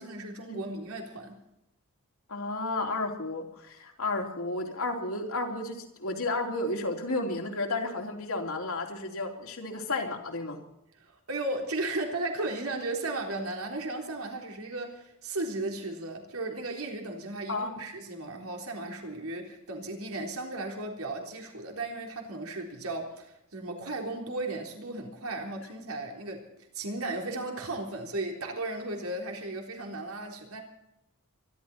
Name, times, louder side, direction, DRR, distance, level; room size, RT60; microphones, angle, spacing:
voice 1, 0.0-1.4 11.0-26.4 26.7-30.6, right 2 dB, 75° right, 3.8 m, -35 dB
voice 2, 2.3-10.6 17.5-17.8, left 2 dB, 75° left, 3.3 m, -32 dB
25.0 x 12.0 x 4.4 m
head